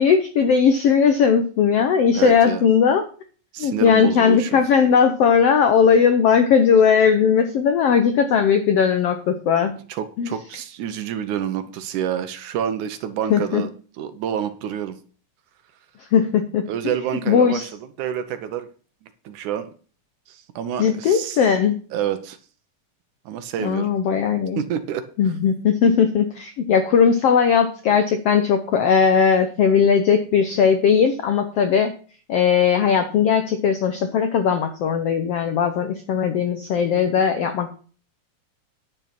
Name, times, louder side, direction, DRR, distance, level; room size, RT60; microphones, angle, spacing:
voice 1, 0.0-3.0 3.6-9.7 10.2-10.3 13.3-13.6 16.1-16.6 17.3-17.7 20.8-21.8 23.6-24.6 25.2-31.9 32.3-37.7, left 6 dB, 75° left, 7 dB, 1.4 m, -18 dB
voice 2, 2.1-2.7 3.5-4.6 9.9-13.7 14.0-15.0 16.7-17.7 18.0-18.7 19.3-19.7 20.3-21.4 21.9-22.4 23.3-23.9 24.6-25.0 27.9-28.0, right 9 dB, 70° right, 10 dB, 2.2 m, -28 dB
10.5 x 6.6 x 5.9 m, 0.40 s
omnidirectional pair, 3.9 m